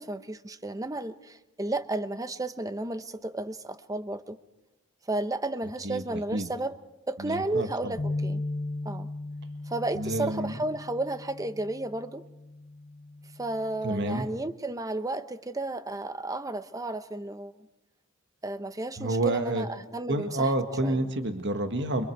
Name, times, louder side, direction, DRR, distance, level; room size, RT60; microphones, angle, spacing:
voice 1, 0.0-4.4 5.1-6.8 7.1-8.4 8.8-9.1 9.7-12.2 13.4-17.5 18.4-20.5 20.8-21.1, right 2 dB, 15° right, 11 dB, 0.8 m, -33 dB
voice 2, 5.8-6.5 7.2-8.0 9.9-10.5 13.8-14.3 19.0-19.6 20.1-22.0, right 1 dB, 55° right, 6 dB, 1.7 m, -29 dB
sound 1, 8.0-14.2, left 2 dB, 30° left, 0.7 m, -37 dB
29.5 x 24.0 x 4.7 m, 0.92 s
head